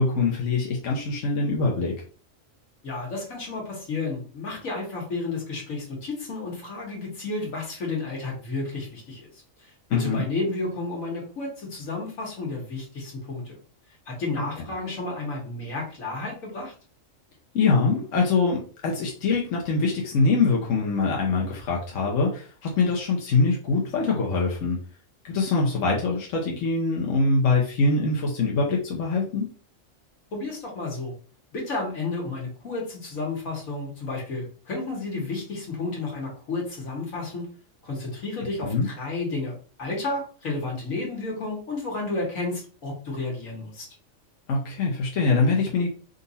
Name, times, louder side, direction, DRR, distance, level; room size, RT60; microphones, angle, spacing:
voice 1, 0.0-1.9 9.9-10.2 17.5-24.8 25.2-29.5 38.6-38.9 44.5-45.9, left 3 dB, 70° left, -2 dB, 1.2 m, -23 dB
voice 2, 2.8-9.3 10.0-13.6 14.1-16.7 30.3-31.1 31.5-37.5 37.8-43.9, left 3 dB, 85° left, -1 dB, 1.9 m, -32 dB
3.9 x 2.6 x 4.0 m, 0.41 s
omnidirectional pair, 1.4 m